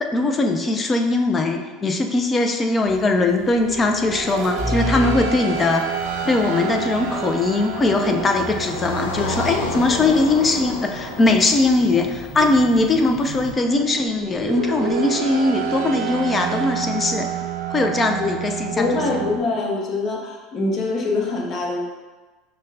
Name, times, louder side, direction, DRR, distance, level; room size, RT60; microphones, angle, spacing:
voice 1, 0.0-5.9 6.3-17.3 17.7-18.9, left 2 dB, 25° left, 5 dB, 0.4 m, -20 dB
sound 1, 2.9-13.5, left 2 dB, 10° right, 1.4 m, -35 dB
sound 2, 3.0-19.4, right 7 dB, 75° right, 0.5 m, -30 dB
Car passing by, 6.2-13.4, left 2 dB, 85° left, 0.4 m, -32 dB
voice 2, 18.8-21.8, left 3 dB, 45° left, 0 dB, 0.8 m, -24 dB
6.1 x 2.2 x 2.6 m, 1.3 s
hypercardioid pair, 85°, 0 cm